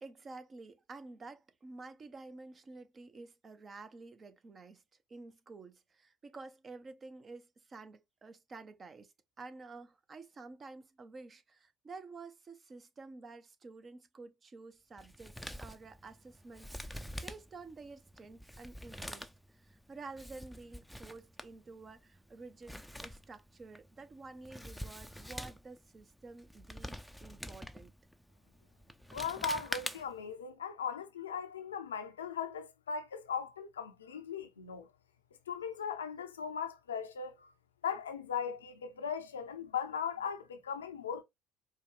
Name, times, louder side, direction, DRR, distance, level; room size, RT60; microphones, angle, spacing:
voice 1, 0.0-4.8 5.1-19.3 19.5-22.8 23.0-27.9, right 3 dB, 35° right, 0.7 m, -50 dB
Male speech man speaking, 15.0-30.3, equal, ahead, 0.5 m, -46 dB
voice 2, 29.1-34.9 35.5-37.5 37.8-41.2, left 6 dB, 85° left, 0.5 m, -38 dB
4.6 x 2.3 x 3.1 m
figure-of-eight pair, 60°, 0 cm